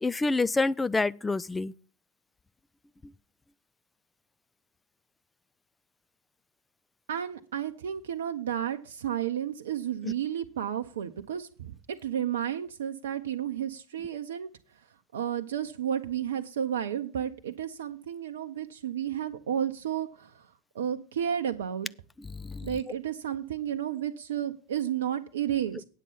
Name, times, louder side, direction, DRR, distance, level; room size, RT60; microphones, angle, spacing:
voice 1, 0.0-1.7 10.0-10.1 22.2-22.8, left 3 dB, 15° left, 0.4 m, -28 dB
voice 2, 7.1-14.5 15.1-20.5 20.7-21.9 22.6-25.8, right 9 dB, 75° right, 0.7 m, -32 dB
9.1 x 7.5 x 5.5 m
hypercardioid pair, 85°, 0 cm